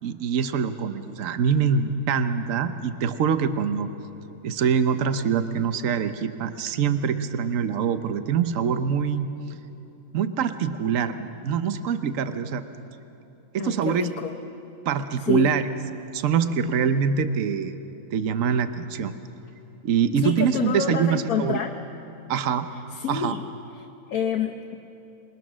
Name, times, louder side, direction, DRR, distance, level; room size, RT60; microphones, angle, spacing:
voice 1, 0.0-3.9 4.4-9.3 10.1-12.6 13.5-14.1 14.8-15.6 16.1-17.7 18.1-19.1 19.8-21.6 22.3-22.7 23.1-23.4, right 7 dB, 65° right, 10 dB, 1.2 m, -24 dB
voice 2, 13.6-14.3 15.2-15.5 20.2-21.7 22.9-23.5 23.8-24.7, left 8 dB, 80° left, 2 dB, 1.3 m, -28 dB
27.0 x 21.5 x 6.2 m, 2.9 s
omnidirectional pair, 1.5 m